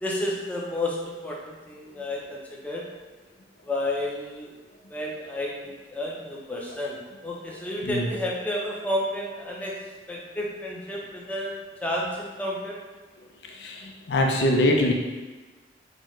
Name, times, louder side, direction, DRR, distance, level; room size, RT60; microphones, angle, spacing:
voice 1, 0.0-2.9 3.7-4.5 4.9-7.0 7.2-9.8 10.1-12.8, left 1 dB, 10° left, -3 dB, 0.6 m, -31 dB
voice 2, 13.5-14.9, left 1 dB, 75° left, 2 dB, 0.5 m, -23 dB
5.2 x 2.1 x 3.1 m, 1.3 s
head